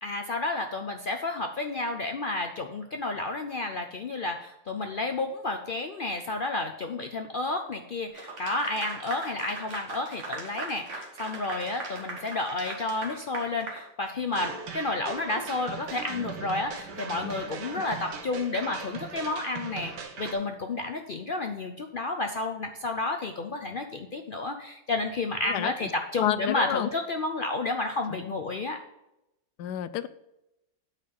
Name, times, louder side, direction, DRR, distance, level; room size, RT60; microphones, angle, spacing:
voice 1, 0.0-28.8, left 2 dB, 65° left, 5 dB, 0.5 m, -31 dB
Clapping / Applause, 8.1-14.5, right 3 dB, 45° right, 1.6 m, -40 dB
sound 1, 14.3-20.3, right 5 dB, 85° right, 1.8 m, -39 dB
voice 2, 26.2-26.9 28.2-28.3 29.6-30.1, left 12 dB, 80° left, 15 dB, 1.2 m, -29 dB
8.9 x 4.2 x 7.1 m, 0.88 s
omnidirectional pair, 1.8 m